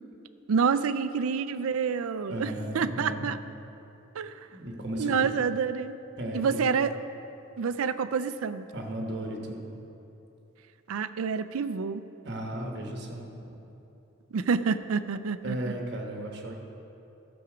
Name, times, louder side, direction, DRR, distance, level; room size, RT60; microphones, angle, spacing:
voice 1, 0.5-3.4 4.2-4.3 5.0-5.9 6.3-6.9 7.6-8.7 10.9-12.0 14.3-15.7, right 6 dB, 85° right, 13 dB, 0.4 m, -28 dB
voice 2, 2.3-3.3 4.5-5.3 6.2-6.7 8.7-9.6 12.2-13.3 15.4-16.5, right 1 dB, 55° right, 1 dB, 1.2 m, -35 dB
12.5 x 7.0 x 5.0 m, 2.9 s
head